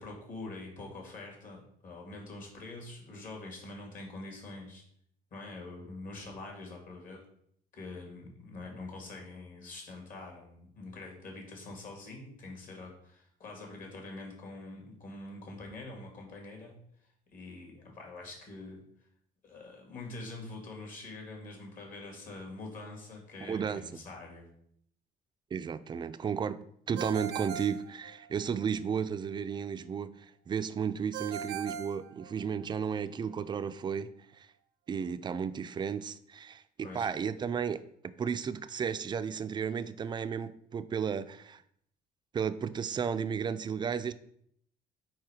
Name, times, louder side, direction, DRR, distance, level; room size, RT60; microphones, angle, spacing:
voice 1, 0.0-4.8 5.3-7.2 7.7-18.9 19.4-24.5 36.8-37.1, left 2 dB, 55° left, 2.1 m, -45 dB
voice 2, 23.4-24.0 25.5-34.5 34.9-41.6 42.3-44.1, right 7 dB, 25° right, 0.3 m, -34 dB
Ringtone, 27.0-28.6 31.1-32.8, right 9 dB, 80° right, 0.6 m, -40 dB
4.6 x 4.4 x 4.8 m
cardioid pair, 110°, 17 cm